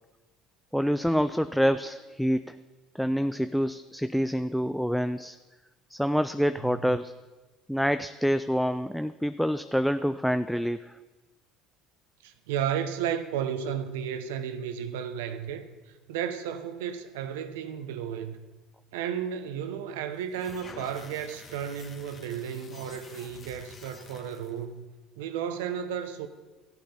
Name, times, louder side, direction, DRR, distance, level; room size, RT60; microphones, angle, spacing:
voice 1, 0.7-2.6 2.9-5.4 5.9-7.1 7.7-11.0, equal, ahead, 0.3 m, -27 dB
voice 2, 12.2-18.5 18.9-24.8 25.2-26.3, right 8 dB, 85° right, 0.8 m, -33 dB
sound 1, 20.2-24.6, left 4 dB, 40° left, 1.4 m, -49 dB
14.0 x 8.0 x 4.3 m
supercardioid pair, 85°, 0 cm